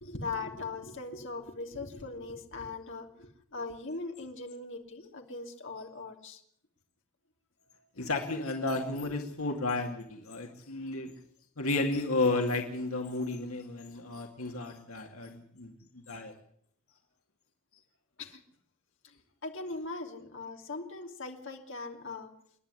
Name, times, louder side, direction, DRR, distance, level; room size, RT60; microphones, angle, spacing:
voice 1, 0.0-6.4 9.0-9.1 18.2-18.4 19.0-19.1 19.4-22.3, left 3 dB, 60° left, 2 dB, 2.9 m, -40 dB
voice 2, 8.0-11.1 11.6-16.3, left 2 dB, 75° left, 2 dB, 2.4 m, -32 dB
28.0 x 11.0 x 9.8 m, 0.67 s
head